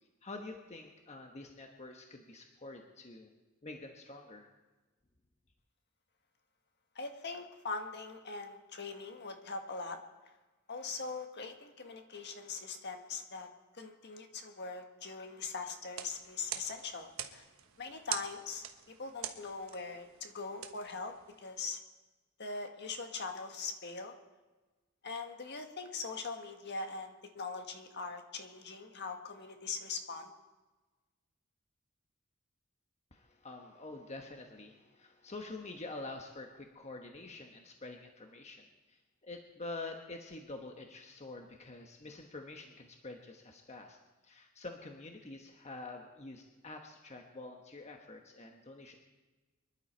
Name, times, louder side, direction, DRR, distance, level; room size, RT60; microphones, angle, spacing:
voice 1, 0.2-3.3 3.6-4.5 33.1-44.0 44.2-49.0, left 2 dB, 30° left, 3 dB, 1.2 m, -47 dB
voice 2, 6.9-10.0 10.7-13.5 13.7-17.5 17.8-21.8 22.4-24.1 25.0-30.3, left 4 dB, 55° left, 5 dB, 1.6 m, -41 dB
sound 1, 15.8-21.6, right 10 dB, 75° right, 1.2 m, -45 dB
24.5 x 11.5 x 4.5 m, 1.2 s
head